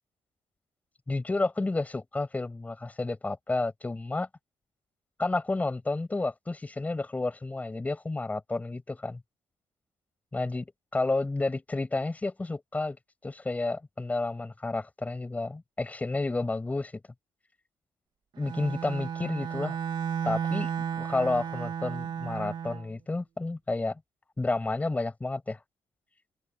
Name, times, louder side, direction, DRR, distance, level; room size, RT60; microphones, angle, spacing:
voice 1, 1.1-4.3 5.2-9.2 10.3-13.0 13.2-17.0 18.4-19.8 20.2-24.0 24.4-25.6, left 2 dB, 15° left, 6.8 m, -31 dB
Bowed string instrument, 18.4-22.9, right 8 dB, 50° right, 3.6 m, -33 dB
cardioid pair, 135°, 10 cm